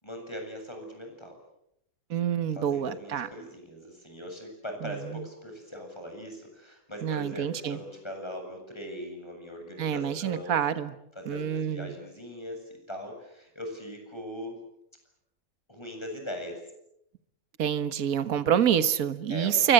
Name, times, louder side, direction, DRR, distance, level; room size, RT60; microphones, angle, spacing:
voice 1, 0.0-1.4 2.5-10.6 11.1-14.6 15.7-16.6 19.3-19.7, equal, 15° left, 3 dB, 7.6 m, -40 dB
voice 2, 2.1-3.3 4.8-5.2 7.0-7.8 9.8-10.9 11.3-11.9 17.6-19.7, right 9 dB, 60° right, 12 dB, 1.7 m, -27 dB
29.5 x 24.0 x 7.8 m, 0.77 s
omnidirectional pair, 1.7 m